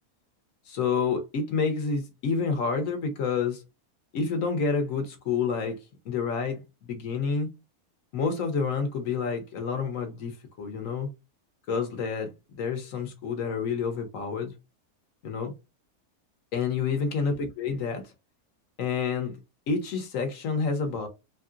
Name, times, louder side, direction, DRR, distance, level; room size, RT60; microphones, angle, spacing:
voice 1, 0.7-3.6 4.1-5.8 6.0-6.6 6.9-7.5 8.1-11.1 11.7-12.3 12.6-14.5 15.2-15.5 16.5-18.0 18.8-19.3 19.7-21.1, left 5 dB, 65° left, 1.1 m, -28 dB
2.9 x 2.7 x 2.4 m
omnidirectional pair, 1.6 m